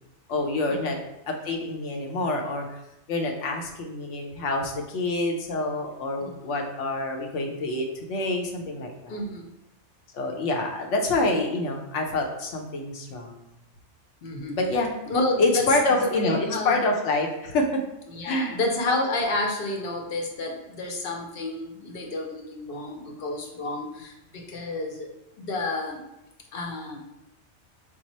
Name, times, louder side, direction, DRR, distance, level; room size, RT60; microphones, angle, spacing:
voice 1, 0.3-1.0 1.3-2.8 3.1-9.2 10.1-13.4 14.6-14.9 15.4-17.8 18.2-18.6, left 2 dB, 80° left, 2 dB, 1.0 m, -27 dB
voice 2, 9.1-9.4 14.2-14.6 15.1-16.8 18.1-25.1 25.4-26.0 26.5-27.0, left 2 dB, 55° left, 2 dB, 0.8 m, -30 dB
4.5 x 2.0 x 4.1 m, 0.91 s
omnidirectional pair, 1.2 m